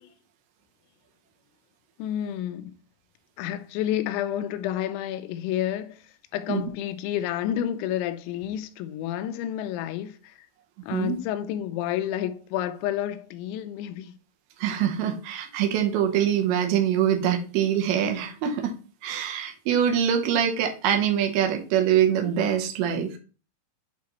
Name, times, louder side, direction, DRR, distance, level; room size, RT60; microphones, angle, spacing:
voice 1, 2.0-2.8 3.4-10.5 10.8-14.1, left 11 dB, 85° left, 2.8 m, -30 dB
voice 2, 14.6-18.7 19.0-23.1, right 9 dB, 75° right, 2.3 m, -24 dB
8.5 x 3.7 x 3.0 m
omnidirectional pair, 5.5 m